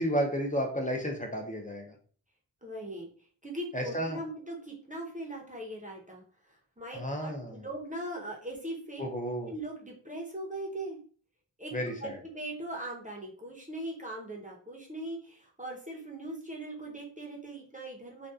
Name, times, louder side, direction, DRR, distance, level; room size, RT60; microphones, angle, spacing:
voice 1, 0.0-1.9 3.7-4.2 6.9-7.6 9.0-9.5 11.7-12.2, equal, 20° left, 2 dB, 0.5 m, -32 dB
voice 2, 2.6-3.1 3.4-9.0 9.5-11.0 11.6-11.7 12.0-18.3, right 1 dB, 20° right, -2 dB, 0.7 m, -40 dB
2.6 x 2.2 x 2.3 m, 0.43 s
wide cardioid pair, 55°, 41 cm